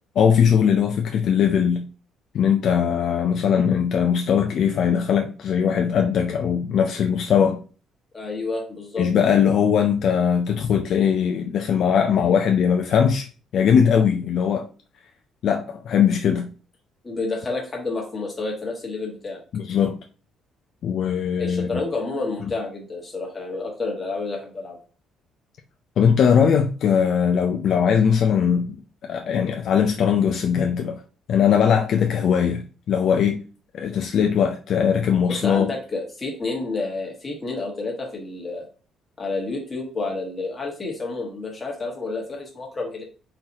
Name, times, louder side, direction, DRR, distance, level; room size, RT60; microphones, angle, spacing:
voice 1, 0.2-1.9 2.3-7.6 9.0-13.3 13.5-14.7 15.4-16.5 19.5-20.0 20.8-21.7 26.0-28.7 29.1-31.0 31.3-33.4 33.7-35.7, left 7 dB, 50° left, 0.4 m, -20 dB
voice 2, 8.1-9.4 17.0-19.4 21.4-24.8 33.8-33.9 35.3-38.6 39.2-43.0, left 3 dB, 15° left, 1.2 m, -30 dB
4.3 x 3.9 x 2.8 m
cardioid pair, 175°, 0 cm